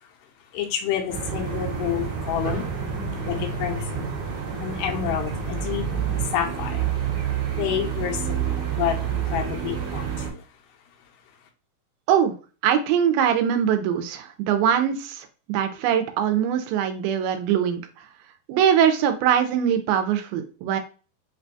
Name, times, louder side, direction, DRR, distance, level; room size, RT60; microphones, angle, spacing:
voice 1, 0.5-2.7 3.3-4.2 4.5-5.9 6.2-6.9 7.5-10.5, left 10 dB, 85° left, 2 dB, 2.6 m, -29 dB
sound 1, 1.1-10.3, right 7 dB, 65° right, 2.0 m, -28 dB
voice 2, 12.6-18.1 18.5-20.8, right 9 dB, 80° right, 7 dB, 2.4 m, -22 dB
5.9 x 2.2 x 2.6 m, 0.35 s
omnidirectional pair, 4.4 m